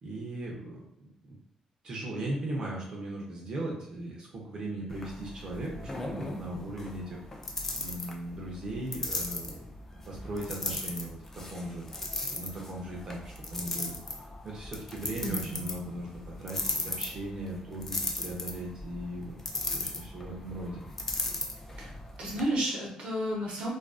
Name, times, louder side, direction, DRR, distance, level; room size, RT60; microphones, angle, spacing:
voice 1, 0.0-1.4 1.8-7.2 7.8-9.7 10.1-11.9 12.3-13.2 13.5-13.9 14.4-16.1 16.4-19.3 19.7-20.8, right 1 dB, 40° right, -2 dB, 0.5 m, -38 dB
sound 1, 4.9-22.4, left 2 dB, 20° left, 0.3 m, -37 dB
voice 2, 15.2-15.6 21.8-21.9 22.2-23.7, right 1 dB, 65° right, -2 dB, 0.7 m, -31 dB
2.4 x 2.3 x 2.3 m, 0.67 s
wide cardioid pair, 170°, 2 cm